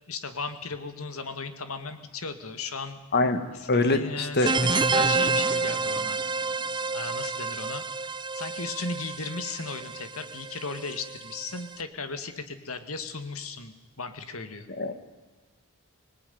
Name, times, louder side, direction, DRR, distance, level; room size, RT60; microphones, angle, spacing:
voice 1, 0.1-3.0 3.5-3.7 3.9-6.2 6.9-7.8 8.3-14.7, left 4 dB, 75° left, 9 dB, 2.2 m, -36 dB
voice 2, 3.7-4.5 14.8-14.9, left 2 dB, 50° left, 9 dB, 2.0 m, -23 dB
sound 1, 4.4-11.7, right 4 dB, 20° right, 0.8 m, -29 dB
25.5 x 20.0 x 9.5 m, 1.2 s
head